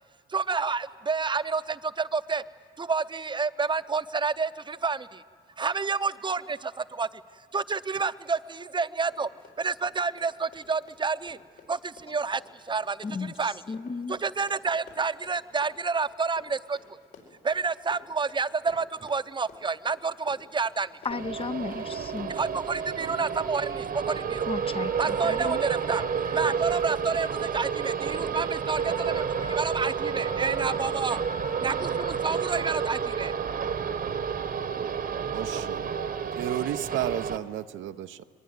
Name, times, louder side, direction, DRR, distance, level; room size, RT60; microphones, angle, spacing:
voice 1, 0.3-2.4 2.8-5.2 5.6-7.2 7.5-9.3 9.6-11.4 11.7-13.6 14.1-17.0 17.4-20.9 22.3-24.5 25.0-31.2 31.6-33.3, right 4 dB, 25° right, 0.7 m, -29 dB
Run, 8.9-25.5 25.8-25.9 26.2-26.5 26.8-26.9 27.4-27.5, left 5 dB, 70° left, 4.9 m, -53 dB
voice 2, 13.0-14.2 21.0-22.3 24.5-25.6, left 4 dB, 30° left, 0.5 m, -34 dB
sound 1, 21.1-37.4, right 6 dB, 45° right, 1.1 m, -30 dB
voice 3, 35.3-36.0 36.4-38.2, right 12 dB, 80° right, 0.7 m, -32 dB
22.5 x 21.0 x 9.4 m
cardioid pair, 90°, 20 cm